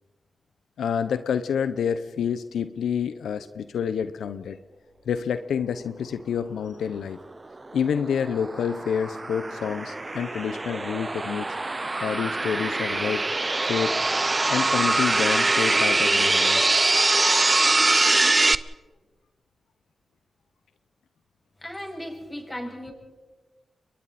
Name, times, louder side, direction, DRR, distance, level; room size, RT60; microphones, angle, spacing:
voice 1, 0.8-4.6 5.1-7.2 7.7-11.5 12.0-13.2 13.7-14.0 14.5-16.7, left 7 dB, 90° left, 11 dB, 0.8 m, -28 dB
sound 1, 7.7-18.6, right 2 dB, 30° right, 0.9 m, -23 dB
voice 2, 21.6-22.9, equal, 15° left, 1 dB, 7.1 m, -36 dB
30.0 x 23.0 x 4.3 m, 1.3 s
cardioid pair, 50°, 0 cm